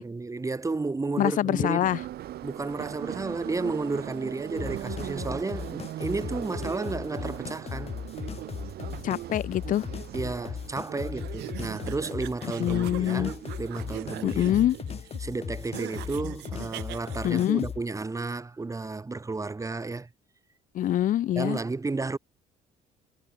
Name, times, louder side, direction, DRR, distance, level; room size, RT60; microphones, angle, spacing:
voice 1, 0.0-1.9 2.4-7.9 10.1-14.7 15.2-20.1 21.3-22.2, right 3 dB, 20° right, 5.1 m, -32 dB
voice 2, 1.2-2.0 9.0-9.9 12.6-13.3 14.2-14.8 17.2-17.6 20.7-21.6, left 12 dB, 50° left, 0.6 m, -25 dB
Subway metro underground, 1.8-14.4, right 13 dB, 70° right, 3.3 m, -40 dB
sound 1, 4.6-17.8, left 7 dB, 35° left, 1.3 m, -38 dB
sound 2, 11.2-17.5, right 19 dB, 85° right, 3.7 m, -42 dB
cardioid pair, 110°, 17 cm